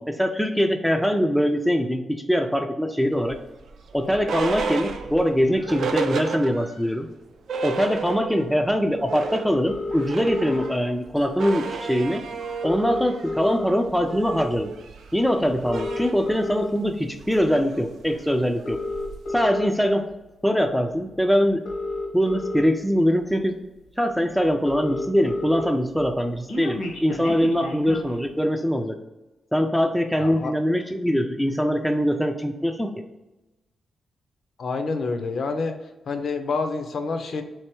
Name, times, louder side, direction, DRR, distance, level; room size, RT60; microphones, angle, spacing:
voice 1, 0.0-3.4 3.9-7.1 7.6-12.2 12.6-14.7 15.1-18.8 19.3-20.0 20.4-21.6 22.1-23.6 24.0-28.9 29.5-32.9, equal, ahead, 4 dB, 0.3 m, -22 dB
sound 1, 3.3-6.9 7.2-7.3 7.5-8.6 8.9-19.3, right 4 dB, 75° right, 0.4 m, -33 dB
sound 2, 9.7-10.7 11.9-12.0 12.2-12.3 12.5-13.9 14.4-14.7 15.5-16.7 17.4-17.6 18.5-19.7 20.9-21.0 21.5-22.7 23.3-23.4 23.7-23.8 24.1-24.2 24.4-25.7 26.0-28.1, left 2 dB, 80° left, 1.1 m, -30 dB
voice 2, 30.2-30.5 34.6-35.7 36.1-37.4, left 4 dB, 55° left, 6 dB, 0.5 m, -27 dB
3.7 x 3.2 x 4.4 m, 1.0 s
wide cardioid pair, 160°, 0 cm